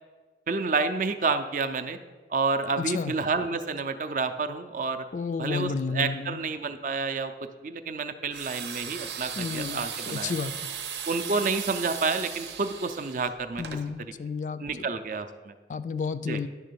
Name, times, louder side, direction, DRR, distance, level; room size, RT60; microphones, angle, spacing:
voice 1, 0.5-2.0 2.3-5.1 5.4-7.3 7.6-10.3 11.1-13.6 14.0-14.1 14.6-15.5 16.3-16.4, right 4 dB, 45° right, 8 dB, 0.5 m, -29 dB
voice 2, 2.8-3.1 5.1-6.4 9.4-10.6 13.6-14.7 15.7-16.5, left 5 dB, 45° left, 13 dB, 0.3 m, -31 dB
sound 1, 8.3-13.8, right 7 dB, 85° right, 0.8 m, -37 dB
10.5 x 3.6 x 6.8 m, 1.4 s
head